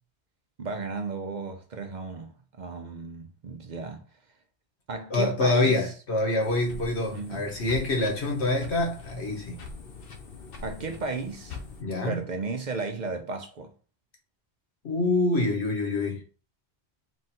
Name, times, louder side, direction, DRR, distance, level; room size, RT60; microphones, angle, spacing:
voice 1, 0.6-4.1 4.9-5.9 7.1-7.5 10.6-11.6 12.1-13.7, right 4 dB, 50° right, 0.7 m, -34 dB
voice 2, 5.1-9.6 11.8-12.2 14.8-16.2, left 2 dB, 85° left, 1.5 m, -26 dB
sound 1, 6.4-11.8, left 4 dB, 60° left, 0.9 m, -43 dB
3.8 x 2.5 x 4.1 m
omnidirectional pair, 1.1 m